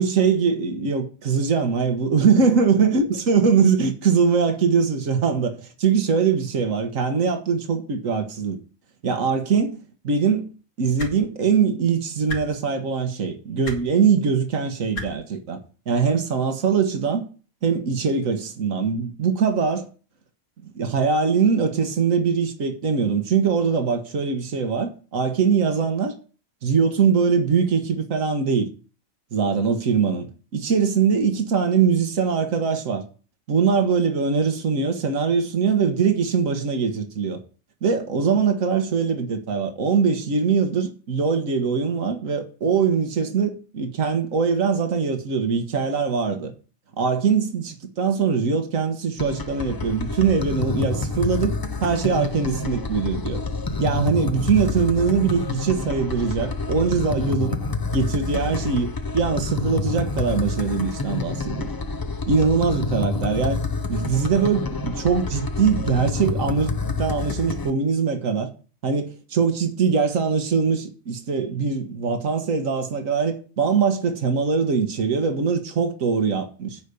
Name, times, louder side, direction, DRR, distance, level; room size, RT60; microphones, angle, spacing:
voice 1, 0.0-8.6 9.0-10.5 10.8-15.6 15.9-17.3 17.6-19.9 20.6-26.1 26.6-28.7 29.3-33.0 33.5-37.4 37.8-46.5 47.0-53.4 53.8-57.6 57.9-61.7 62.3-63.6 63.9-68.5 68.8-76.8, right 5 dB, 85° right, 1.7 m, -22 dB
sound 1, 11.0-11.1 12.3-12.4 13.6-13.8 14.9-15.1 16.3-16.4, left 2 dB, 75° left, 2.4 m, -31 dB
sound 2, 49.2-67.7, left 3 dB, 30° left, 0.4 m, -28 dB
9.1 x 5.0 x 6.9 m
omnidirectional pair, 1.3 m